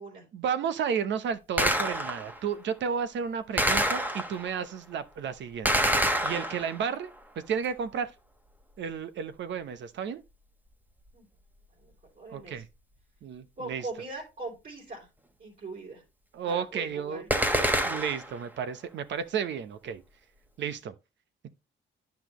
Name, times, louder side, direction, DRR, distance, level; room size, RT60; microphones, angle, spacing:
voice 1, 0.3-5.9 6.2-7.1 7.4-8.1 8.8-10.2 12.3-12.7 13.2-13.8 16.3-17.2 17.8-20.0 20.6-20.9, right 7 dB, 65° right, 0.9 m, -32 dB
Gunshot gunfire, 1.6-2.4 3.6-4.6 5.6-6.9 17.3-18.4, right 1 dB, 10° right, 1.3 m, -26 dB
voice 2, 11.8-12.6 13.6-15.1 15.4-16.0 16.5-17.6, right 3 dB, 50° right, 3.5 m, -41 dB
10.5 x 5.9 x 3.1 m
cardioid pair, 90°, 20 cm